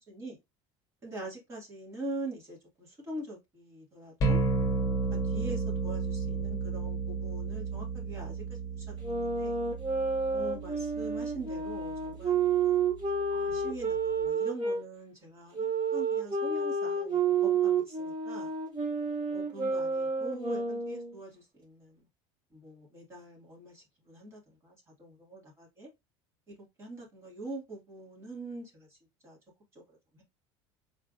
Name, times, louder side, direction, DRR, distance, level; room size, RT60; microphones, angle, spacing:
voice 1, 0.1-0.4 1.0-4.4 5.1-8.4 9.4-9.5 10.3-12.8 13.3-18.5 19.3-22.0 22.5-25.9 26.5-28.9 29.2-29.4 29.9-30.2, right 1 dB, 25° right, 2.2 m, -43 dB
sound 1, 4.2-14.2, right 4 dB, 25° left, 1.5 m, -34 dB
sound 2, 9.0-14.8 15.5-21.2, right 5 dB, 40° right, 3.2 m, -30 dB
4.8 x 3.6 x 2.5 m
cardioid pair, 170°, 12 cm